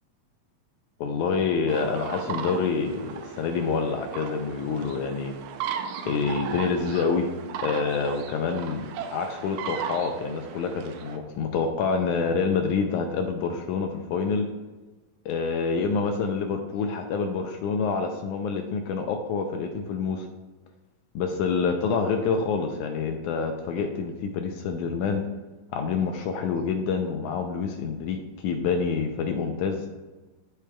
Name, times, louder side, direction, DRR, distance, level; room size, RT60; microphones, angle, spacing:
voice 1, 1.0-5.3 6.0-7.3 7.6-14.5 15.3-20.3 21.2-25.2 25.7-28.2 28.4-29.9, left 5 dB, 80° left, 4 dB, 1.9 m, -27 dB
sound 1, 1.7-11.2, right 8 dB, 80° right, 1.7 m, -36 dB
13.0 x 4.9 x 2.2 m, 1.2 s
omnidirectional pair, 3.8 m